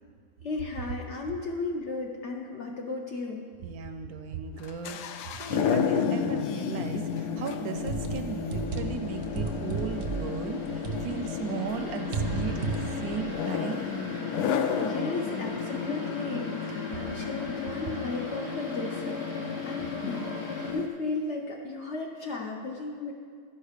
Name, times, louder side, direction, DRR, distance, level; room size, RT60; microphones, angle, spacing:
voice 1, 0.4-3.4 14.5-20.3 20.7-23.1, left 3 dB, 60° left, 0 dB, 0.8 m, -35 dB
voice 2, 1.1-1.4 3.6-5.0 5.3-14.0, right 6 dB, 70° right, 7 dB, 1.0 m, -37 dB
sound 1, 4.6-20.9, left 6 dB, 80° left, 1.1 m, -32 dB
sound 2, 7.2-20.7, equal, 40° left, 1.6 m, -44 dB
sound 3, 7.9-11.4 11.7-13.3, right 5 dB, 50° right, 0.7 m, -33 dB
11.5 x 5.5 x 4.9 m, 2.1 s
omnidirectional pair, 1.8 m